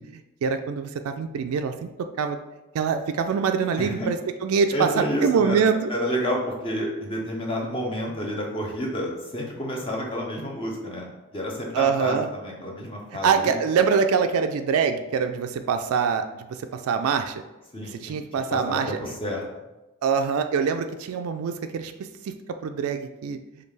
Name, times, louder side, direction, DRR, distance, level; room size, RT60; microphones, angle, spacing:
voice 1, 0.0-1.9 2.2-2.4 2.7-4.2 4.4-5.9 11.7-12.3 13.2-16.3 16.9-17.4 18.0-18.9 20.0-21.9 22.6-23.4, right 6 dB, 85° right, 7 dB, 0.3 m, -24 dB
voice 2, 3.8-4.1 4.7-5.6 5.9-11.1 11.3-13.5 17.7-19.4, equal, 25° left, -1 dB, 0.6 m, -30 dB
5.2 x 2.3 x 3.2 m, 1.0 s
head